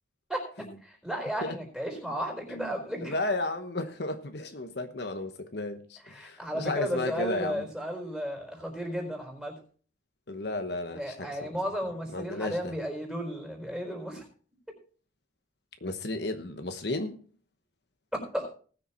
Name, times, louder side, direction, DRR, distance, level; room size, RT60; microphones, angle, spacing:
voice 1, 0.3-3.1 6.0-9.5 10.9-14.3 18.3-18.5, equal, 5° right, 4.5 m, -34 dB
voice 2, 3.0-7.7 10.3-11.5 12.1-12.7 15.8-17.2, left 2 dB, 60° left, 1.1 m, -33 dB
19.5 x 6.7 x 4.4 m
head